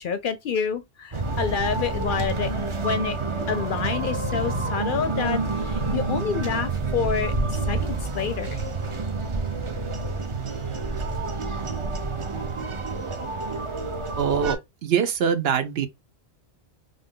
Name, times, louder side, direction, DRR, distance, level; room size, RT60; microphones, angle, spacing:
voice 1, 0.0-2.5 2.8-3.2 3.5-5.4 5.7-7.3 7.7-8.6, left 6 dB, 60° left, 0.6 m, -28 dB
sound 1, 1.1-14.5, right 3 dB, 35° right, 0.6 m, -28 dB
voice 2, 14.2-15.9, right 7 dB, 70° right, 0.9 m, -23 dB
3.4 x 2.7 x 3.6 m
omnidirectional pair, 1.1 m